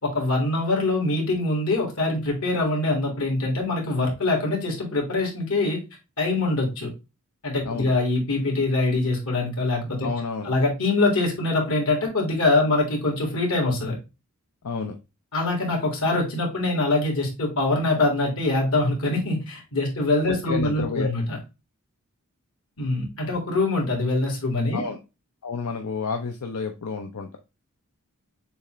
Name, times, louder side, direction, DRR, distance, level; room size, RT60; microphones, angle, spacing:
voice 1, 0.0-5.8 6.2-6.9 7.4-10.1 10.5-14.0 15.3-21.4 22.8-24.8, left 2 dB, 70° left, 0 dB, 2.0 m, -24 dB
voice 2, 10.0-10.5 14.6-15.0 20.3-21.1 24.7-25.0 25.4-27.4, left 5 dB, 85° left, 4 dB, 0.6 m, -30 dB
6.8 x 2.5 x 3.0 m, 0.27 s
head